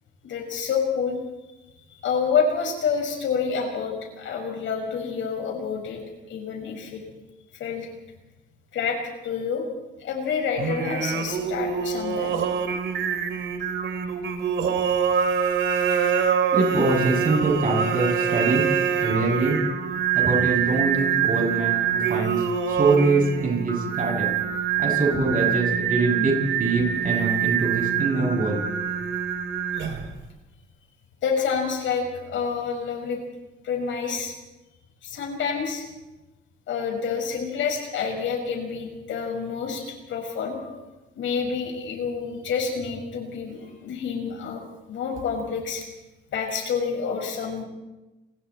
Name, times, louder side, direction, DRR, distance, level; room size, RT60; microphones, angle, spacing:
voice 1, 0.2-1.2 1.9-6.0 6.3-7.0 7.6-7.9 8.7-9.0 9.2-9.6 10.0-12.3 31.2-33.2 33.6-34.3 35.0-35.9 36.7-40.8 41.1-44.6 44.9-45.8 46.3-47.6, left 6 dB, 75° left, 2 dB, 5.9 m, -28 dB
Singing, 10.6-30.2, right 7 dB, 70° right, 3.1 m, -25 dB
voice 2, 16.5-18.6 19.0-19.6 20.1-22.4 22.7-24.3 24.8-28.7, right 3 dB, 45° right, 1 dB, 7.8 m, -23 dB
29.5 x 21.0 x 4.4 m, 1.1 s
cardioid pair, 90°, 20 cm